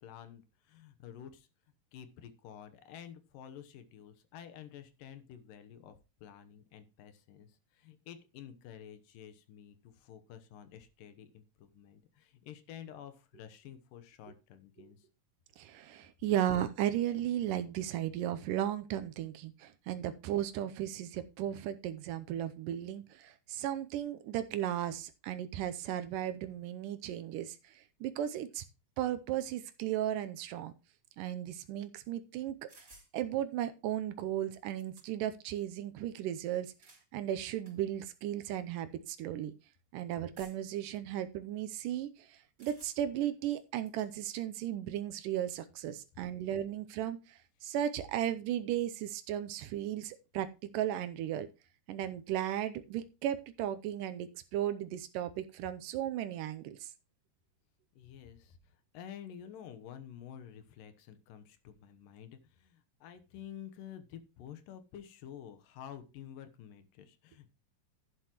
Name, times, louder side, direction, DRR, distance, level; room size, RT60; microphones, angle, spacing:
voice 1, 0.0-1.5 1.9-5.9 6.2-15.1 58.0-67.5, left 9 dB, 85° left, 10 dB, 2.7 m, -50 dB
voice 2, 15.6-28.6 29.0-30.7 31.2-32.7 33.1-36.7 37.1-39.5 39.9-51.5 51.9-56.9, right 11 dB, 85° right, 10 dB, 2.3 m, -35 dB
sound 1, 32.7-33.1 34.2-34.3 34.5-35.3 36.5-37.1 37.6-37.8 38.6-38.7 40.4-40.8 42.6-43.2 43.6-44.1, right 2 dB, 20° right, 3.2 m, -58 dB
11.5 x 9.7 x 3.0 m, 0.29 s
omnidirectional pair, 3.8 m